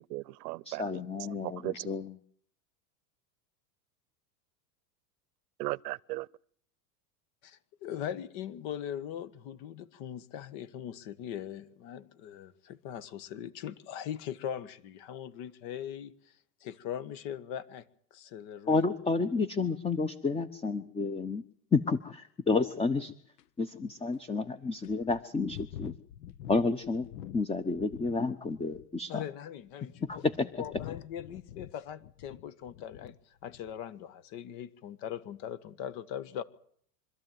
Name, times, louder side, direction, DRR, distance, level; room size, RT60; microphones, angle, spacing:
voice 1, 0.0-1.0 1.4-1.9 5.6-6.3, right 20 dB, 80° right, 0.8 m, -37 dB
voice 2, 0.6-2.2 18.7-21.4 21.7-23.1 23.6-25.9 26.5-27.1 27.3-29.2 30.1-30.6, left 4 dB, 10° left, 0.9 m, -30 dB
voice 3, 7.4-18.8 29.1-36.4, left 10 dB, 60° left, 1.7 m, -41 dB
sound 1, 22.7-22.8 23.4-23.5 24.1-24.2 24.8-28.2 28.5-29.0 29.7-33.2 33.5-33.8, left 11 dB, 80° left, 1.1 m, -46 dB
25.5 x 13.5 x 9.3 m
supercardioid pair, 120°, 47 cm